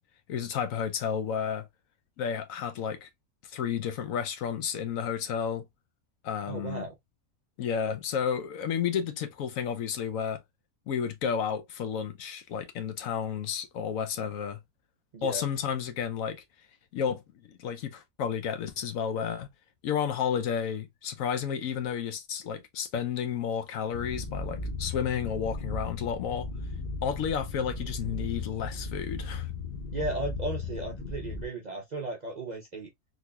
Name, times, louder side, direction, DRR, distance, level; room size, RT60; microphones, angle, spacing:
voice 1, 0.3-1.7 2.2-3.1 3.5-5.6 6.2-6.9 7.6-10.4 10.9-14.6 15.2-16.4 16.9-17.2 17.5-19.5 19.8-26.5 27.0-29.5, left 7 dB, 70° left, 1.0 m, -31 dB
voice 2, 6.5-6.9 15.1-15.4 29.9-32.9, right 2 dB, 45° right, 0.5 m, -35 dB
sound 1, 23.9-31.4, left 3 dB, 40° left, 0.8 m, -36 dB
3.8 x 2.9 x 2.3 m
omnidirectional pair, 1.5 m